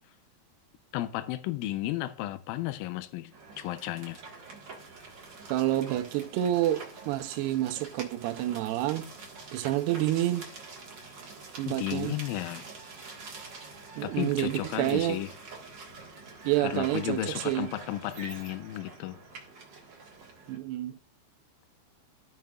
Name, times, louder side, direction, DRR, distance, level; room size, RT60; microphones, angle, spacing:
voice 1, 0.9-4.2 11.7-12.6 14.0-15.3 16.6-19.2, left 15 dB, 85° left, 2.0 m, -33 dB
sound 1, 3.3-20.6, right 4 dB, 65° right, 1.1 m, -46 dB
voice 2, 5.5-9.1 9.5-10.5 11.6-12.2 14.0-15.3 16.4-17.7 20.5-21.0, right 14 dB, 80° right, 2.7 m, -29 dB
15.0 x 5.6 x 2.4 m
omnidirectional pair, 4.8 m